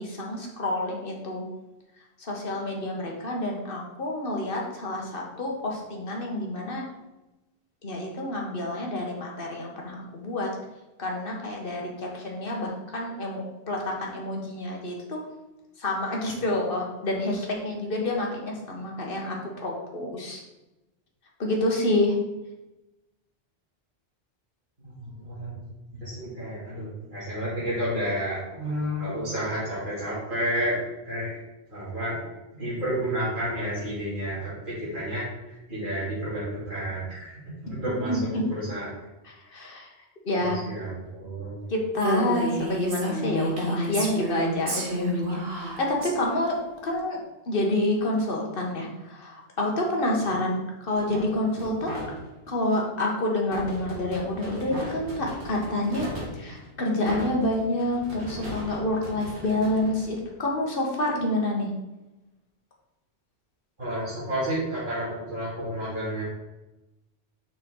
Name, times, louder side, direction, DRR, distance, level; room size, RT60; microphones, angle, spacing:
voice 1, 0.0-1.5 2.2-6.8 7.8-10.5 11.0-15.2 15.8-20.4 21.4-22.2 38.0-38.5 39.2-39.9 40.2-40.6 41.7-46.5 46.8-47.2 47.5-52.1 52.5-56.1 56.3-61.7, left 1 dB, 55° left, -1 dB, 1.6 m, -28 dB
voice 2, 24.8-25.6 26.0-30.8 31.0-31.4 31.7-32.1 32.6-35.2 35.7-37.3 37.6-38.2 38.5-38.9 40.4-41.6 63.8-66.2, equal, 50° right, -10 dB, 3.0 m, -30 dB
Female speech woman speaking, 42.0-46.1, right 1 dB, 65° right, 1.5 m, -30 dB
sound 1, 50.9-52.5 53.5-60.6, equal, 80° right, 2.0 m, -38 dB
6.4 x 5.8 x 3.9 m, 1.0 s
omnidirectional pair, 1.1 m